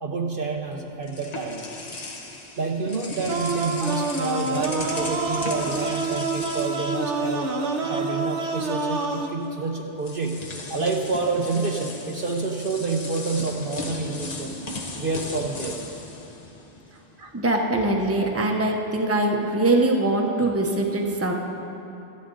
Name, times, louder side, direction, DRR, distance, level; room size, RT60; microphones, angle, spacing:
voice 1, 0.0-1.6 2.6-7.5 7.8-14.5 15.0-15.8 17.2-17.3, right 4 dB, 55° right, 2 dB, 0.9 m, -28 dB
sound 1, 0.6-7.8 8.1-8.3 9.4-9.5 10.0-17.1, left 2 dB, 40° left, 1.0 m, -37 dB
sound 2, 3.3-9.3, right 3 dB, 70° right, 1.3 m, -27 dB
voice 2, 17.3-21.3, right 2 dB, 15° right, 1 dB, 0.9 m, -22 dB
24.5 x 8.6 x 3.9 m, 2.9 s
omnidirectional pair, 1.2 m